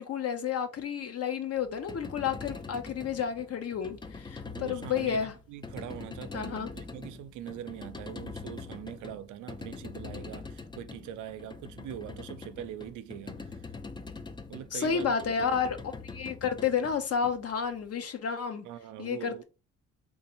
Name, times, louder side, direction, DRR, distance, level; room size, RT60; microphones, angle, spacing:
voice 1, 0.0-5.3 6.3-6.7 14.7-18.7 19.0-19.4, left 7 dB, 55° left, 0.8 m, -31 dB
sound 1, 1.7-17.8, left 4 dB, 15° left, 0.4 m, -43 dB
voice 2, 4.4-13.7 14.5-15.1 15.4-15.7 18.6-19.4, right 11 dB, 80° right, 0.5 m, -42 dB
3.7 x 2.6 x 2.9 m
cardioid pair, 90°, 30 cm